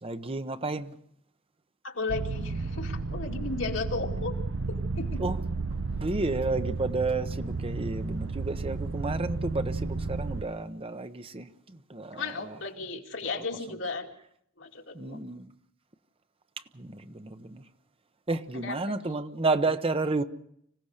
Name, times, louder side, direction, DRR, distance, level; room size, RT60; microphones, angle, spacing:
voice 1, 0.0-1.0 5.2-5.4 6.0-12.6 14.9-15.5 16.7-17.7 18.3-20.2, right 3 dB, 30° right, 0.9 m, -31 dB
voice 2, 1.8-4.3 4.7-5.2 12.1-14.1 14.6-15.2 18.5-18.9, left 3 dB, 75° left, 2.7 m, -35 dB
sound 1, 2.1-10.4, right 3 dB, 70° right, 0.8 m, -32 dB
25.5 x 17.0 x 6.6 m
head